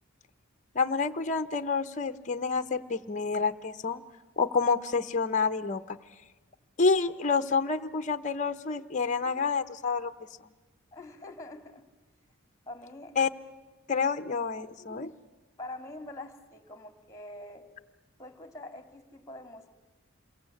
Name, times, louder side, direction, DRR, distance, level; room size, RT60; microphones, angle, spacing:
voice 1, 0.7-4.0 4.4-6.0 6.8-10.1 13.2-13.3 13.9-15.1, left 4 dB, 35° left, 10 dB, 0.8 m, -28 dB
voice 2, 10.9-11.8 12.7-13.2 15.6-17.7 18.2-19.7, left 2 dB, 15° left, 9 dB, 2.4 m, -44 dB
28.0 x 23.0 x 8.5 m, 1.2 s
head